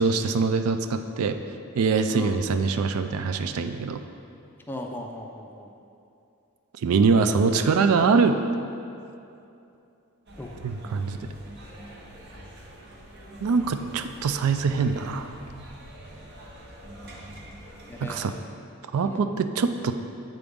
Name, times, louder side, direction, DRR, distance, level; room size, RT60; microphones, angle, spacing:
voice 1, 0.0-1.4 1.8-4.0 6.8-8.4 10.6-11.2 13.4-15.3 18.0-18.3 18.9-19.9, right 5 dB, 75° right, 8 dB, 0.3 m, -23 dB
voice 2, 4.7-5.7 10.4-10.6 17.9-18.3 19.0-19.3, left 1 dB, 10° left, 2 dB, 0.4 m, -37 dB
sound 1, 10.3-18.2, right 1 dB, 50° right, 0.8 m, -45 dB
8.4 x 3.9 x 3.6 m, 2.6 s
head